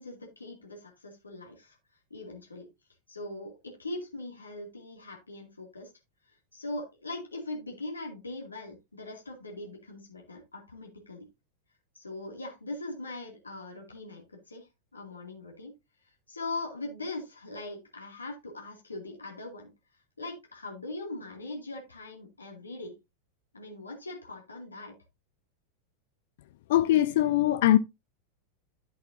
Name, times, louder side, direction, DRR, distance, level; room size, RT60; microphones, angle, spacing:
voice 1, 0.0-1.8 2.1-2.7 3.1-5.9 6.3-11.3 11.9-15.7 16.3-19.7 20.2-22.9 23.5-24.9, left 2 dB, 80° left, 2.4 m, -41 dB
voice 2, 26.7-27.8, left 13 dB, 55° left, 0.5 m, -22 dB
11.5 x 7.9 x 2.7 m
figure-of-eight pair, 90°, 0 cm